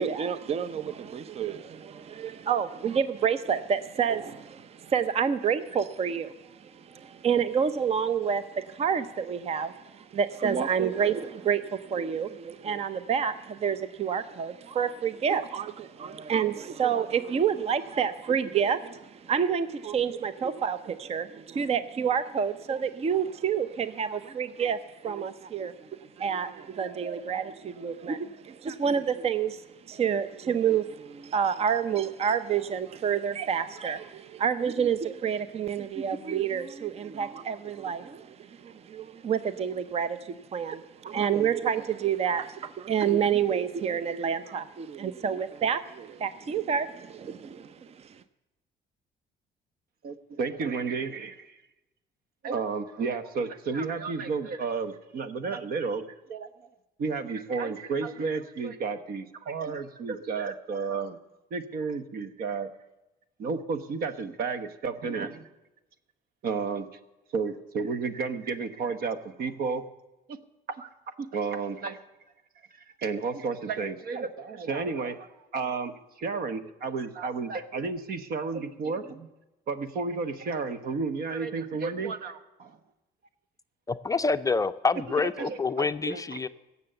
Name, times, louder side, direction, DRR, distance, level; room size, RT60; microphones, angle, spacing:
voice 1, 0.0-48.2, right 7 dB, 35° right, 13 dB, 0.6 m, -29 dB
voice 2, 50.0-51.6 52.4-56.5 57.0-61.2 61.5-62.7 63.4-65.5 66.4-66.9 67.3-69.8 70.3-70.4 70.8-70.9 71.3-72.0 72.7-79.3 79.7-82.8 85.2-86.2, right 4 dB, 60° right, 11 dB, 1.2 m, -32 dB
voice 3, 83.9-86.5, left 4 dB, 20° left, 10 dB, 0.4 m, -27 dB
17.0 x 7.0 x 7.8 m, 1.0 s
cardioid pair, 110°, 17 cm